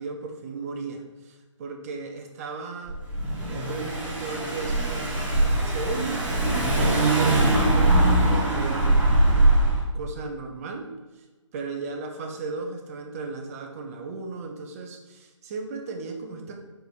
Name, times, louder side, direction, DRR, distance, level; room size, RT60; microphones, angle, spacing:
voice 1, 0.0-3.0 3.4-6.2 6.7-9.0 9.6-11.2 11.5-16.6, right 4 dB, 30° right, 3 dB, 0.8 m, -36 dB
Car / Engine, 2.9-9.8, right 1 dB, 10° right, 1.2 m, -22 dB
4.9 x 4.9 x 4.7 m, 1.2 s
figure-of-eight pair, 150°, 16 cm